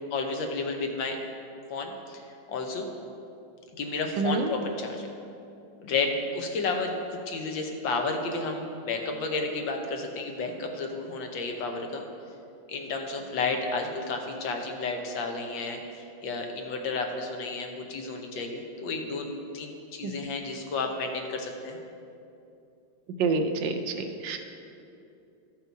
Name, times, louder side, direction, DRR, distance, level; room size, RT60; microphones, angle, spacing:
voice 1, 0.1-1.2 1.7-2.2 2.5-2.9 3.7-5.1 5.8-12.0 12.7-15.8 16.2-19.3 19.5-21.8, left 3 dB, 70° left, 3 dB, 1.6 m, -32 dB
voice 2, 4.2-4.5 20.0-20.1 23.2-24.4, right 4 dB, 70° right, 6 dB, 1.2 m, -27 dB
14.0 x 5.5 x 4.5 m, 2.7 s
omnidirectional pair, 2.3 m